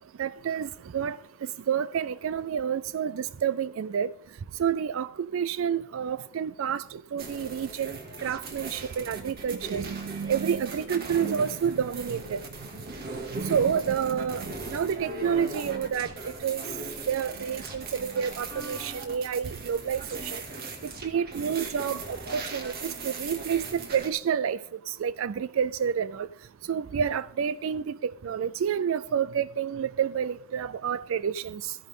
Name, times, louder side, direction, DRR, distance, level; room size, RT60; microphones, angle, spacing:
voice 1, 0.2-1.2 1.7-4.1 4.6-12.4 13.3-16.1 16.4-16.6 17.1-20.4 20.8-24.6 24.9-26.3 26.7-31.8, right 7 dB, 75° right, 0.4 m, -29 dB
sound 1, 7.2-24.1, right 3 dB, 50° right, 2.3 m, -39 dB
14.0 x 10.5 x 3.7 m
head